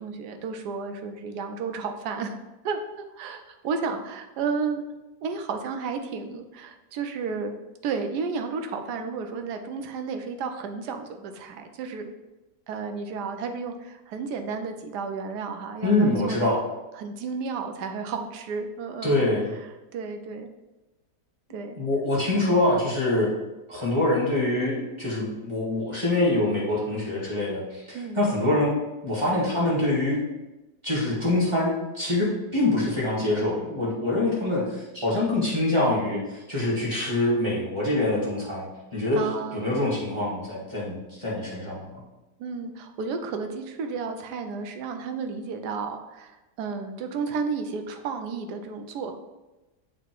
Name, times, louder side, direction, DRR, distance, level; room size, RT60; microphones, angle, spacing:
voice 1, 0.0-2.4 2.6-4.8 5.2-7.6 7.8-12.1 12.7-16.5 16.9-20.5 21.5-21.8 27.9-28.2 39.1-39.8 42.4-49.1, right 5 dB, 75° right, 6 dB, 1.2 m, -32 dB
voice 2, 15.8-16.6 19.0-19.5 21.8-23.3 23.7-28.7 29.0-30.2 30.8-38.7 38.9-39.2 39.5-41.9, left 2 dB, 15° right, -7 dB, 1.8 m, -25 dB
7.4 x 3.2 x 4.6 m, 1.0 s
omnidirectional pair, 1.8 m